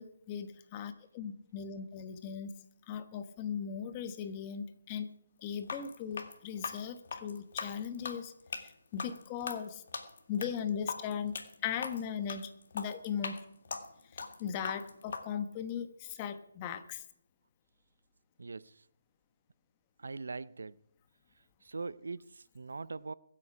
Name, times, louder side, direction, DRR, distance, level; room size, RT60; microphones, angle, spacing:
voice 1, 0.0-2.5 2.9-5.1 5.4-8.3 8.6-9.8 10.3-11.3 11.6-13.3 14.1-17.0, left 8 dB, 25° left, 1.1 m, -38 dB
sound 1, 5.6-15.2, left 5 dB, 55° left, 1.9 m, -41 dB
voice 2, 18.4-18.9 20.0-20.8 21.3-23.1, right 3 dB, 75° right, 0.5 m, -42 dB
22.0 x 8.6 x 4.8 m
hypercardioid pair, 160°, 0 cm